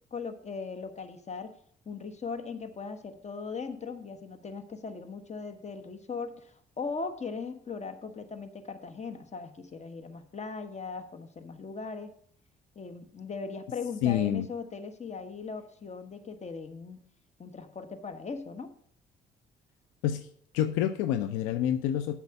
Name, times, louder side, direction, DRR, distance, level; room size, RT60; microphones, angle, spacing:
voice 1, 0.1-1.5 1.8-12.1 12.7-17.0 17.4-18.7, left 4 dB, 35° left, 8 dB, 1.3 m, -39 dB
voice 2, 14.0-14.5 20.0-20.3 20.5-22.2, left 11 dB, 80° left, 11 dB, 0.5 m, -28 dB
8.1 x 5.8 x 6.8 m, 0.62 s
hypercardioid pair, 55°, 20 cm